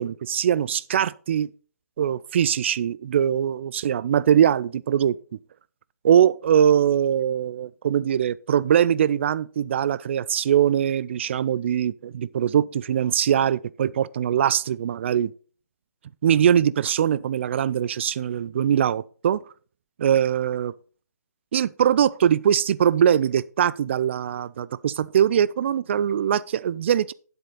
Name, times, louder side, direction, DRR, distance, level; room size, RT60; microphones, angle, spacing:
voice 1, 0.0-1.5 2.0-5.2 6.0-15.3 16.2-19.4 20.0-20.7 21.5-27.1, right 9 dB, 40° right, 0.4 m, -22 dB
9.5 x 8.0 x 4.0 m
figure-of-eight pair, 140°, 9 cm